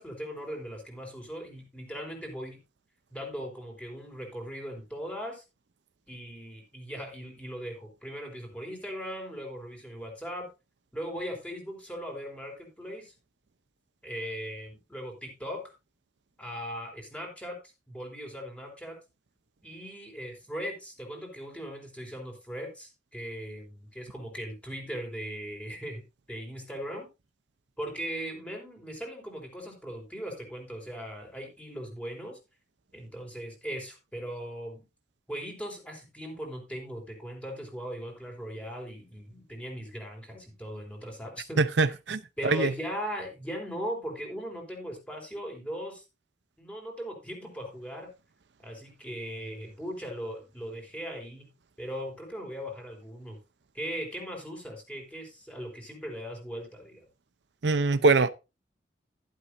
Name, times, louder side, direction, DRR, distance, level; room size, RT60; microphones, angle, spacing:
voice 1, 0.0-2.6 3.1-5.4 6.1-10.5 10.9-13.1 14.0-15.6 16.4-17.6 17.9-19.0 19.6-27.1 27.8-32.4 32.9-34.8 35.3-41.9 42.4-46.0 46.6-48.1 48.6-51.5 51.8-53.4 53.7-57.1, equal, 10° left, 4.1 m, -39 dB
voice 2, 41.8-42.7 57.6-58.3, right 3 dB, 90° right, 0.7 m, -23 dB
12.0 x 11.5 x 2.6 m
head